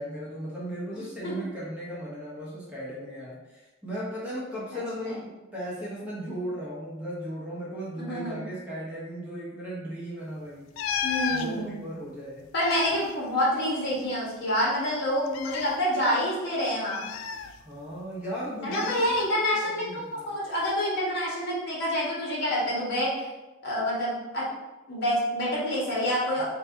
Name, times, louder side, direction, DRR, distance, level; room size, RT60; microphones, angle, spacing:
voice 1, 0.0-11.0 11.3-12.4 17.6-19.1 19.6-20.4, equal, 5° right, -8 dB, 1.0 m, -36 dB
voice 2, 4.7-5.1 8.0-8.4 11.0-11.8 12.5-17.1 18.6-23.3 23.6-24.4 24.9-26.4, equal, 55° left, -6 dB, 1.5 m, -27 dB
sound 1, 10.8-11.5 12.4-14.1 14.3-14.4 15.3-15.8 16.9-18.0 18.7-19.3 20.5-20.8, left 6 dB, 80° left, 0.3 m, -33 dB
4.1 x 2.7 x 3.5 m, 1.1 s
head